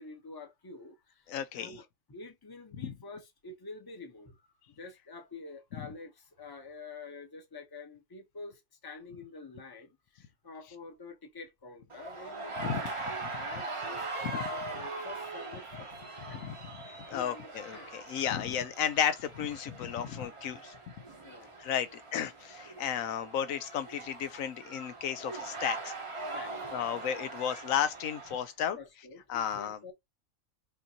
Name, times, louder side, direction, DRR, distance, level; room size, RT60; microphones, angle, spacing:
voice 1, 0.0-4.4 4.8-15.9 16.3-16.4 17.1-18.0 21.2-21.6 26.3-26.8 28.7-29.9, left 3 dB, 20° left, 0.8 m, -48 dB
voice 2, 1.3-1.8 2.8-2.9 12.6-12.8 16.3-16.6 17.1-20.8 21.6-25.9 26.7-28.8 29.3-29.8, left 9 dB, 80° left, 1.0 m, -33 dB
sound 1, 11.9-28.5, right 3 dB, 30° right, 0.7 m, -41 dB
5.3 x 2.6 x 2.8 m
omnidirectional pair, 1.4 m